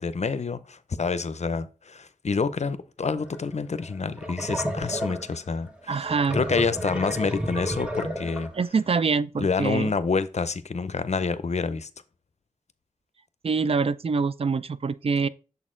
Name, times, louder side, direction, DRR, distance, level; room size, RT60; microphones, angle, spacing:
voice 1, 0.0-6.0 6.3-8.5 9.4-11.9, left 4 dB, 55° left, 0.5 m, -28 dB
sound 1, 3.2-3.4 3.8-8.6, equal, 10° right, 1.1 m, -32 dB
voice 2, 5.9-6.4 8.5-9.9 13.4-15.3, right 5 dB, 45° right, 0.4 m, -25 dB
6.8 x 4.2 x 3.7 m
wide cardioid pair, 55°, 14 cm